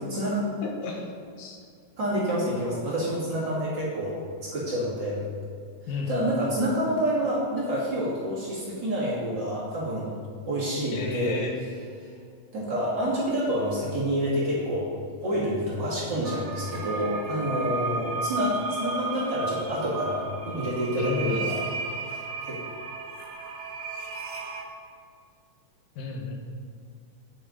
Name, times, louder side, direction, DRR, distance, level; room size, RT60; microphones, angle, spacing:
voice 1, 0.6-1.1 1.4-1.6 5.9-6.5 10.9-11.5 21.0-21.5 26.0-26.3, left 3 dB, 80° left, 1 dB, 2.9 m, -33 dB
voice 2, 2.0-5.2 6.1-10.1 10.4-11.4 12.5-14.9 15.2-21.6 22.1-22.6, equal, 35° right, -8 dB, 2.9 m, -28 dB
sound 1, 16.2-24.6, right 3 dB, 65° right, 2.4 m, -34 dB
9.3 x 6.9 x 5.2 m, 2.3 s
omnidirectional pair, 3.8 m